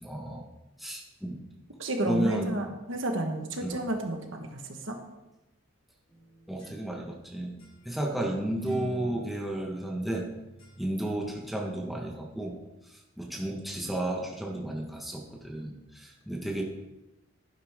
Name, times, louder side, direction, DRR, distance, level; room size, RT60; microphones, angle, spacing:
voice 1, 0.0-0.5 0.8-1.4 2.1-2.5 3.6-3.8 6.5-7.6 7.8-10.3 10.8-12.6 12.9-16.6, right 1 dB, ahead, -1 dB, 1.4 m, -33 dB
voice 2, 1.8-5.0, right 1 dB, 60° right, 4 dB, 1.5 m, -31 dB
sound 1, 6.1-7.2 7.6-7.8 8.6-11.1, right 1 dB, 30° left, 4.6 m, -46 dB
11.5 x 10.5 x 3.7 m, 1.0 s
head